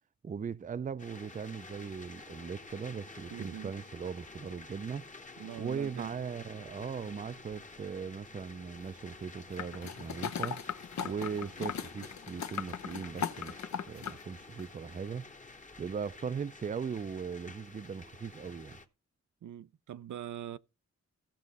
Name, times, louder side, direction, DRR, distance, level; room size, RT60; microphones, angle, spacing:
voice 1, 0.2-5.1 5.6-10.6 11.0-15.2 15.8-18.8, right 6 dB, 30° right, 0.4 m, -39 dB
sound 1, 1.0-18.9, left 3 dB, 25° left, 1.0 m, -50 dB
voice 2, 3.3-3.7 5.4-6.1 19.4-20.6, right 10 dB, 85° right, 0.6 m, -42 dB
sound 2, 9.6-14.2 14.6-14.7, left 7 dB, 70° left, 0.7 m, -38 dB
15.5 x 6.3 x 4.0 m
wide cardioid pair, 110°, 29 cm